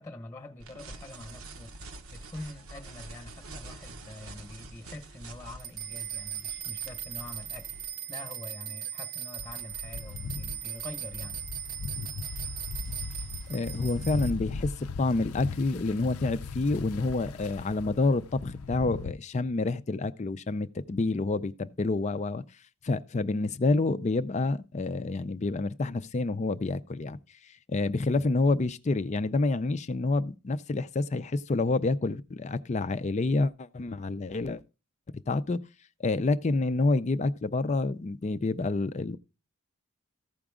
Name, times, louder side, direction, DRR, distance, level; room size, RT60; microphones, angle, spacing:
voice 1, 0.0-11.4, left 2 dB, 10° left, 1.1 m, -45 dB
sound 1, 0.6-7.9, right 2 dB, 70° right, 0.9 m, -46 dB
sound 2, 5.6-14.3, right 11 dB, 45° right, 0.6 m, -39 dB
sound 3, 9.4-19.1, left 4 dB, 85° left, 0.5 m, -38 dB
voice 2, 13.5-14.7 15.0-22.4 22.8-27.2 27.7-34.6 35.3-35.6 36.0-39.2, left 3 dB, 30° left, 0.4 m, -28 dB
15.0 x 4.9 x 3.6 m
head